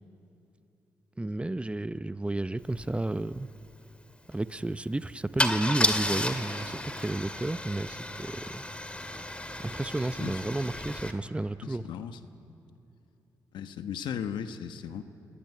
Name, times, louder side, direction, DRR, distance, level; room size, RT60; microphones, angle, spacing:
voice 1, 1.2-3.5 4.3-8.6 9.6-11.9, right 2 dB, 15° right, 14 dB, 0.7 m, -32 dB
Car / Engine starting / Idling, 2.8-2.9 3.1-3.4 5.4-11.1, left 1 dB, 15° left, 2.2 m, -32 dB
voice 2, 11.6-12.2 13.5-15.0, left 8 dB, 85° left, 9 dB, 1.2 m, -36 dB
25.5 x 18.0 x 9.5 m, 2.8 s
cardioid pair, 65°, 8 cm